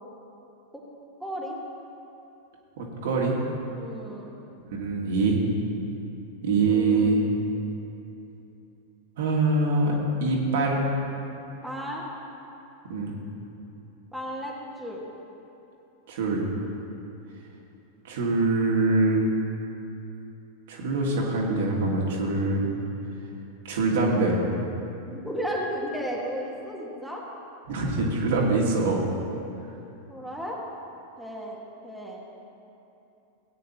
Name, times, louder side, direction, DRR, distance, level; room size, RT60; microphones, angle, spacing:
voice 1, 1.2-1.6 3.8-4.4 6.6-7.2 11.6-12.0 14.1-15.0 25.1-27.2 30.1-30.6 31.2-32.2, equal, ahead, -4 dB, 1.5 m, -34 dB
voice 2, 2.8-3.4 4.7-5.4 6.4-7.2 9.2-10.9 12.9-13.1 16.1-16.5 18.0-19.3 20.7-22.7 23.6-24.4 27.7-29.1, right 3 dB, 55° right, -2 dB, 1.9 m, -24 dB
17.0 x 9.2 x 2.9 m, 2.9 s
figure-of-eight pair, 90°, 0 cm